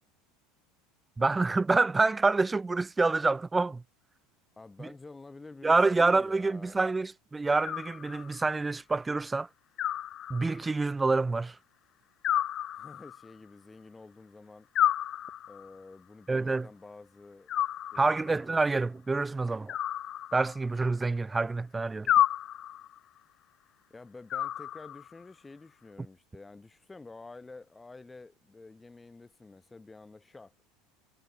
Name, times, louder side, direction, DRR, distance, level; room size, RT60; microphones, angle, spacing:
voice 1, 1.2-3.8 5.6-9.5 10.3-11.6 16.3-16.7 17.9-19.8 20.3-22.1, right 3 dB, 10° right, 0.5 m, -27 dB
voice 2, 4.6-6.8 12.7-14.7 15.5-17.5 17.9-19.0 23.9-30.5, left 3 dB, 10° left, 5.1 m, -49 dB
Animal, 7.6-8.5 9.8-10.8 12.2-13.3 14.7-15.8 17.5-18.4 19.7-20.8 22.1-23.0 24.3-25.2, left 11 dB, 35° left, 0.7 m, -31 dB
supercardioid pair, 140°, 0 cm